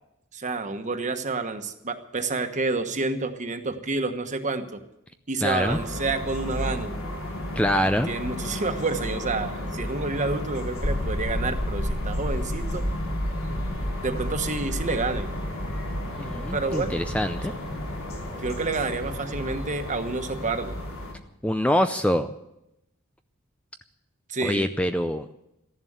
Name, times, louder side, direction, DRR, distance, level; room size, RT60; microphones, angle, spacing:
voice 1, 0.3-4.8 5.3-7.0 8.1-12.8 14.0-15.3 16.5-16.9 18.4-20.8 24.3-24.7, right 3 dB, 35° right, 6 dB, 1.3 m, -29 dB
voice 2, 5.4-5.8 7.6-8.1 16.2-17.5 21.4-22.3 24.4-25.3, equal, 5° left, 8 dB, 0.5 m, -24 dB
sound 1, 5.6-21.1, left 1 dB, 75° left, 3.5 m, -33 dB
sound 2, 10.8-20.9, equal, 45° left, 1.2 m, -34 dB
14.5 x 11.0 x 8.0 m, 0.85 s
head